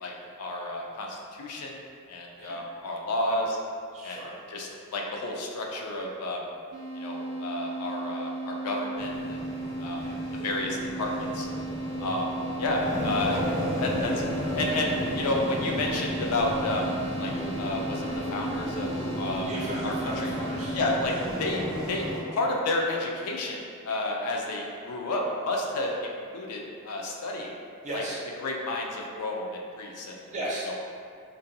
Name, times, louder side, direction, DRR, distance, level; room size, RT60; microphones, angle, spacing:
voice 1, 0.0-1.8 2.1-3.6 4.0-4.2 4.5-6.4 6.9-9.4 9.8-10.0 10.4-11.5 12.0-12.3 12.6-13.5 13.8-14.1 14.6-16.9 17.2-17.3 17.6-19.5 19.8-20.3 20.7-21.1 21.4-22.1 22.3-23.6 23.8-27.5 27.9-28.0 28.4-30.2 30.7-30.8, left 2 dB, 85° left, 0 dB, 0.4 m, -31 dB
voice 2, 3.9-4.3 9.9-10.2 14.0-14.1 19.4-20.9 27.8-28.2 30.2-30.7, right 1 dB, 35° right, -6 dB, 0.6 m, -36 dB
sound 1, 6.7-20.9, right 2 dB, 80° right, 0.4 m, -36 dB
sound 2, 9.0-22.2, equal, 15° left, 0.4 m, -33 dB
2.5 x 2.2 x 2.6 m, 2.3 s
head